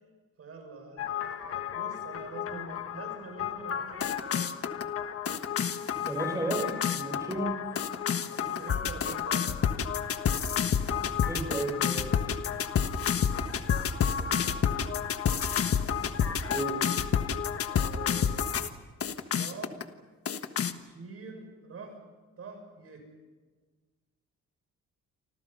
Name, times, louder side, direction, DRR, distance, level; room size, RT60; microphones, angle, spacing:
voice 1, 0.4-4.5 8.3-9.6 14.1-15.3 17.7-18.5 19.3-19.8 20.8-22.0 22.4-23.1, right 4 dB, 50° right, 4 dB, 6.8 m, -46 dB
sound 1, 1.0-18.7 19.0-19.8 20.3-20.7, left 7 dB, 50° left, 1.5 m, -30 dB
voice 2, 6.0-7.5 11.2-12.1 16.5-16.8, right 2 dB, 10° right, 2 dB, 5.0 m, -33 dB
29.5 x 25.5 x 5.6 m, 1.4 s
cardioid pair, 140°, 30 cm